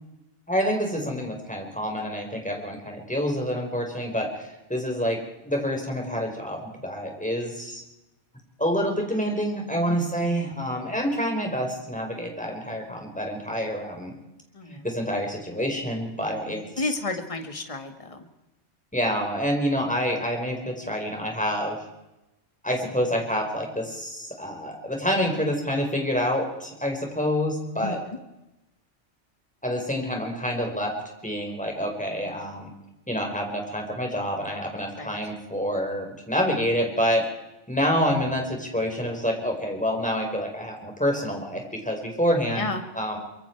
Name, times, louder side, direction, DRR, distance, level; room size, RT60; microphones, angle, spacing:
voice 1, 0.5-5.2 5.4-7.8 8.6-14.1 14.7-16.9 18.9-21.8 22.6-28.0 29.6-30.9 31.2-32.7 33.1-37.2 37.7-42.7 42.9-43.2, equal, 5° left, 1 dB, 4.8 m, -27 dB
voice 2, 14.5-14.8 16.5-18.3 27.8-28.2 34.9-35.2 42.6-42.8, left 3 dB, 30° left, 6 dB, 2.0 m, -32 dB
24.5 x 23.5 x 4.7 m, 0.93 s
omnidirectional pair, 1.2 m